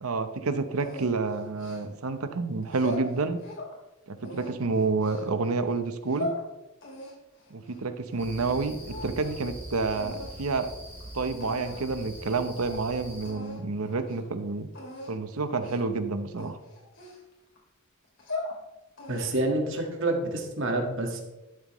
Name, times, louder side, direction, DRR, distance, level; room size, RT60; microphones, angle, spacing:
voice 1, 0.0-3.4 4.1-6.3 7.5-10.7 11.1-14.7 15.1-16.6, right 3 dB, 80° right, 10 dB, 0.8 m, -29 dB
sound 1, 0.8-2.1 2.6-3.7 4.2-5.3 5.9-6.4 6.8-8.6 8.8-9.5 9.9-10.3 11.0-11.1 11.4-11.9 12.3-12.4 12.7-12.8 13.2-13.6 14.0-14.2 14.7-15.1 15.6-15.9 16.4-17.6 18.0-18.6 19.0-19.5, left 2 dB, 60° left, 2.7 m, -39 dB
sound 2, 8.2-13.3, right 1 dB, 10° left, 2.3 m, -43 dB
voice 2, 19.1-21.2, right 2 dB, 60° right, 3 dB, 1.7 m, -28 dB
12.0 x 7.6 x 3.1 m, 1.0 s
head